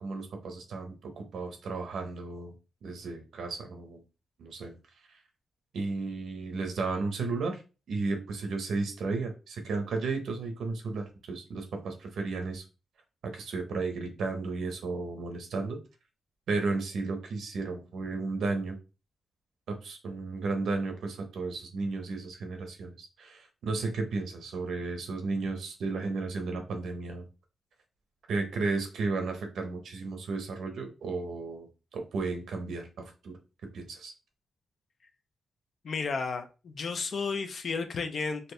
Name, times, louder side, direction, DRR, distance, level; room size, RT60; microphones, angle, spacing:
voice 1, 0.0-2.5 2.8-4.0 4.4-4.7 5.7-7.6 7.9-12.6 13.2-15.8 16.5-18.8 19.7-27.3 28.3-33.4 33.7-34.1, right 3 dB, 70° right, 4 dB, 1.0 m, -34 dB
voice 2, 35.8-38.5, left 4 dB, 45° left, 7 dB, 0.6 m, -33 dB
4.2 x 2.6 x 3.3 m, 0.31 s
wide cardioid pair, 165°, 0 cm